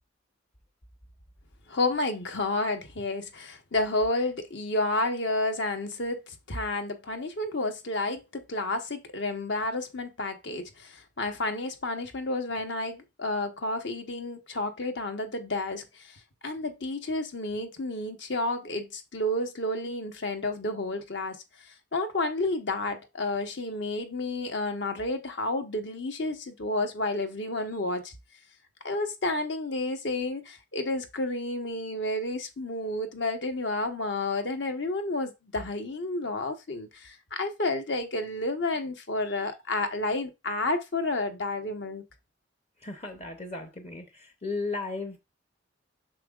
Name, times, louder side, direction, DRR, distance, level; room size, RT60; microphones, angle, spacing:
voice 1, 1.7-15.8 16.4-21.4 21.9-28.1 28.8-42.0, left 2 dB, 60° left, 1.0 m, -30 dB
voice 2, 42.8-45.2, left 3 dB, 30° left, 0.7 m, -35 dB
7.5 x 6.1 x 2.4 m
head